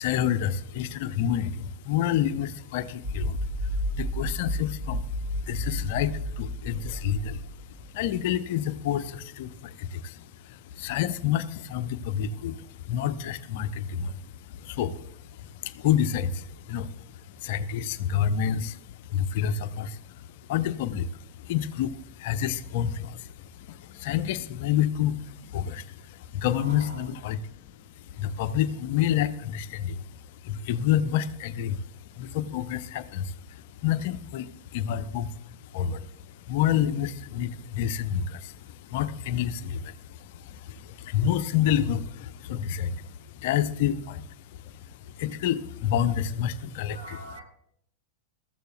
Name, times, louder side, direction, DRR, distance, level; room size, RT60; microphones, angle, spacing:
voice 1, 0.0-31.8 32.1-47.0, left 9 dB, 50° left, 12 dB, 0.7 m, -29 dB
sound 1, 3.0-7.9, equal, 40° right, 4.2 m, -32 dB
voice 2, 26.5-27.1 46.9-47.4, right 2 dB, 75° right, 0 dB, 5.9 m, -43 dB
22.5 x 13.5 x 2.3 m, 0.70 s
figure-of-eight pair, 90°, 0 cm